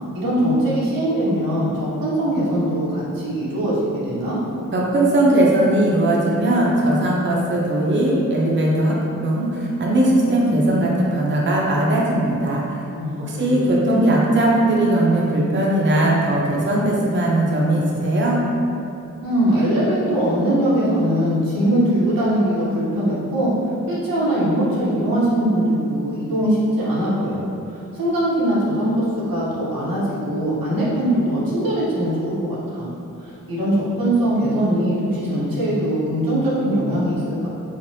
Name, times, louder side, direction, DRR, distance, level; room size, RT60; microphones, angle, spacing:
voice 1, 0.1-4.4 12.9-13.3 13.9-14.0 19.2-23.5 23.9-32.9 33.2-37.5, right 1 dB, 90° right, -8 dB, 0.8 m, -21 dB
voice 2, 4.7-8.9 9.2-12.6 13.2-18.4, right 1 dB, 35° right, -4 dB, 0.5 m, -19 dB
3.2 x 2.1 x 2.6 m, 2.7 s
cardioid pair, 45°, 34 cm